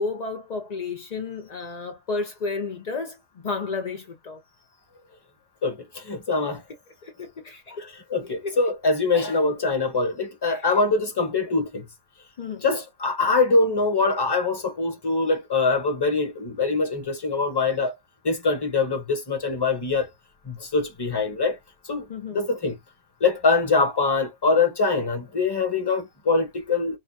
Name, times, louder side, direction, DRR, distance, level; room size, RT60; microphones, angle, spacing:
voice 1, 0.0-4.4 6.4-6.5 7.0-7.9 8.4-8.6 10.5-10.7 12.4-12.6 22.1-22.4, left 4 dB, 65° left, 0.4 m, -32 dB
voice 2, 5.6-6.6 8.1-11.8 12.6-17.9 18.2-20.1 20.5-21.6 21.8-22.0 22.3-22.8 23.2-27.0, left 3 dB, 20° left, 0.8 m, -23 dB
4.7 x 2.2 x 2.7 m
omnidirectional pair, 1.6 m